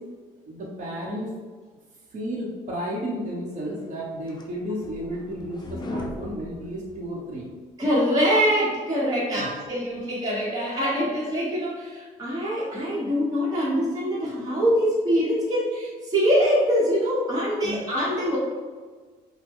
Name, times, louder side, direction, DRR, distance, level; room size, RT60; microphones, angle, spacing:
voice 1, 0.5-1.3 2.1-7.5 9.3-9.5 17.6-17.8, equal, 45° right, -5 dB, 1.0 m, -32 dB
sound 1, 3.8-7.5, left 1 dB, 25° left, 0.5 m, -38 dB
voice 2, 7.8-18.4, equal, 25° right, -7 dB, 1.3 m, -24 dB
5.8 x 2.2 x 3.5 m, 1.4 s
cardioid pair, 110°, 17 cm